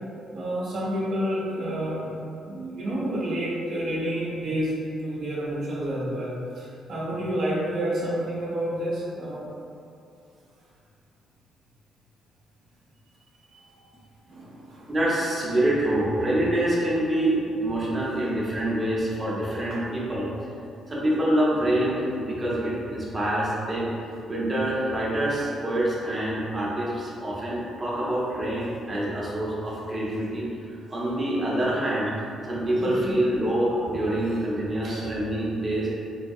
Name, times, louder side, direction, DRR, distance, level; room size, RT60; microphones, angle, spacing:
voice 1, 0.3-2.0 2.5-9.5 13.5-13.9 14.3-14.9 32.7-33.2 34.8-35.2, right 1 dB, 65° right, -6 dB, 0.7 m, -29 dB
voice 2, 14.9-20.3 20.9-23.9 24.3-30.5 30.9-32.1 32.4-35.9, right 1 dB, 20° right, -7 dB, 0.7 m, -26 dB
3.9 x 2.2 x 2.6 m, 2.6 s
cardioid pair, 105°, 0 cm